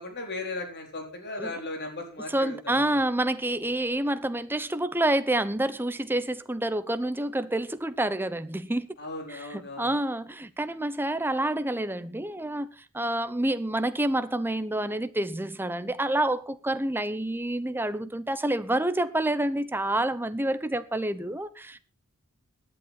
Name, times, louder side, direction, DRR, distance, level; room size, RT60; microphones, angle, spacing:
voice 1, 0.0-3.0 9.0-10.0, left 2 dB, 50° left, 4.1 m, -37 dB
voice 2, 2.3-8.9 9.3-12.7 12.9-21.8, right 1 dB, 10° right, 0.9 m, -28 dB
17.5 x 10.5 x 4.3 m
head